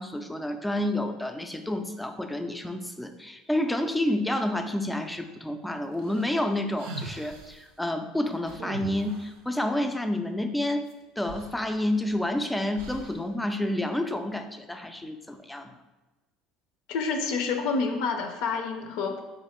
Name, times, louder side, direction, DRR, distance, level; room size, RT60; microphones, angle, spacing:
voice 1, 0.0-10.8 11.2-15.7, left 1 dB, 5° left, 7 dB, 0.4 m, -29 dB
sound 1, 6.0-7.6 8.5-9.4 10.9-11.0 11.2-12.2 12.8-13.3, right 3 dB, 80° right, 0.6 m, -41 dB
voice 2, 16.9-19.2, left 4 dB, 75° left, 5 dB, 0.5 m, -28 dB
3.8 x 2.6 x 4.3 m, 1.1 s
supercardioid pair, 95°, 0 cm